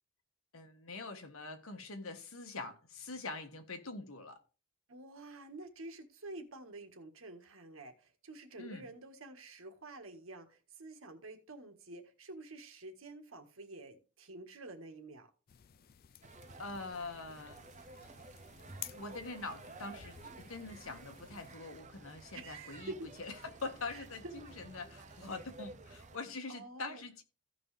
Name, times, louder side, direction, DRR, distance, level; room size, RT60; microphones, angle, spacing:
voice 1, 0.5-4.4 8.6-8.8 16.6-17.6 18.8-22.9 23.2-23.3 23.6-27.2, left 3 dB, 80° left, 1.5 m, -44 dB
voice 2, 4.9-15.3 22.3-23.1 23.9-24.5 26.5-27.0, right 2 dB, 75° right, 1.6 m, -49 dB
sound 1, 15.5-21.6, left 10 dB, 45° left, 0.4 m, -53 dB
sound 2, 16.2-26.2, right 3 dB, 35° right, 0.7 m, -53 dB
15.5 x 5.5 x 3.3 m
head